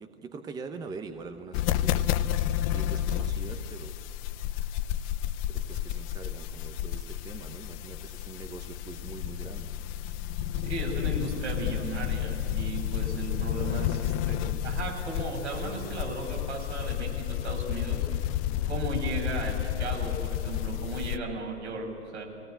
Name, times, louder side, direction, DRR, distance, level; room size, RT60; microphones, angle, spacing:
voice 1, 0.0-4.0 5.5-9.7, right 4 dB, 10° right, 8 dB, 0.8 m, -43 dB
sound 1, 1.5-21.2, left 12 dB, 30° left, 0.6 m, -31 dB
voice 2, 10.6-18.1 18.7-22.2, right 3 dB, 65° right, 0 dB, 6.1 m, -36 dB
22.5 x 17.5 x 9.8 m, 2.5 s
figure-of-eight pair, 110°, 36 cm